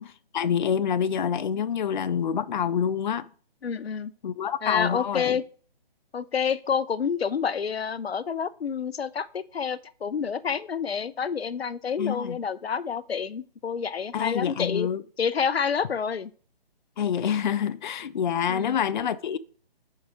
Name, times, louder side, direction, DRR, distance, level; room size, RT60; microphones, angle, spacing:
voice 1, 0.0-3.3 4.2-5.4 12.0-12.4 14.1-15.0 17.0-19.4, left 8 dB, 50° left, 0.5 m, -27 dB
voice 2, 3.6-4.1 4.6-5.4 6.1-14.9 15.2-16.3 18.5-18.8, left 6 dB, 90° left, 0.7 m, -28 dB
5.3 x 4.7 x 6.1 m
hypercardioid pair, 155°, 30 cm